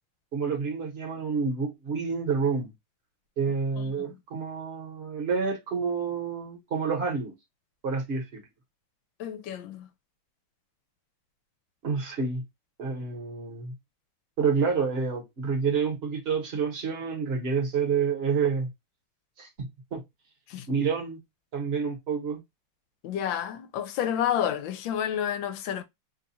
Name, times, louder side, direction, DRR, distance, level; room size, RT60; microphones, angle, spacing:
voice 1, 0.3-2.7 3.4-7.3 7.8-8.4 11.8-12.4 12.8-13.7 14.4-18.7 19.4-20.0 20.7-21.2 21.5-22.4, right 5 dB, 40° right, 1.0 m, -28 dB
voice 2, 9.2-9.9 20.5-20.7 23.0-25.8, left 9 dB, 80° left, 1.3 m, -30 dB
3.2 x 2.3 x 3.9 m
omnidirectional pair, 2.1 m